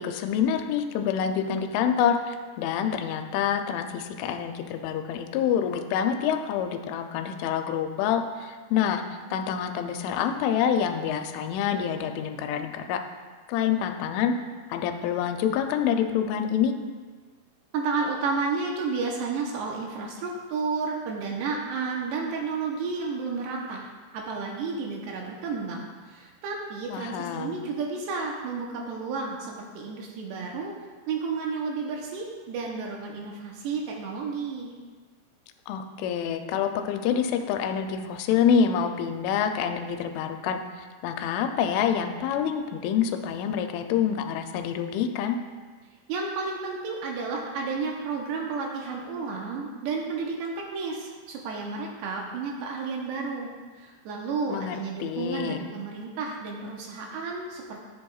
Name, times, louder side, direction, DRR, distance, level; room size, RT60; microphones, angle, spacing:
voice 1, 0.0-9.0 9.3-13.0 13.5-14.3 14.7-16.7 26.9-27.6 35.7-45.4 54.5-55.6, left 8 dB, 90° left, 6 dB, 3.1 m, -27 dB
voice 2, 17.7-30.7 31.1-34.7 46.1-53.5 53.8-57.9, right 4 dB, 75° right, -1 dB, 2.7 m, -32 dB
13.5 x 7.6 x 2.4 m, 1.5 s
omnidirectional pair, 5.4 m